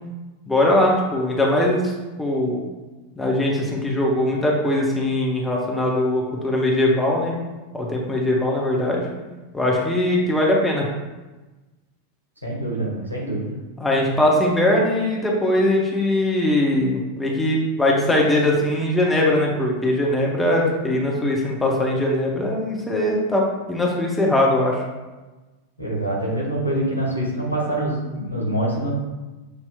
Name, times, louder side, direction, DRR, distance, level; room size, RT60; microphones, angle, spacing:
voice 1, 0.5-1.9 2.2-2.6 3.2-7.3 7.7-9.0 9.5-10.8 13.8-24.8, left 1 dB, 5° left, -2 dB, 0.8 m, -21 dB
voice 2, 12.4-13.5 25.8-28.9, right 1 dB, 85° right, -4 dB, 1.1 m, -25 dB
6.7 x 2.8 x 2.3 m, 1.2 s
figure-of-eight pair, 90°, 0 cm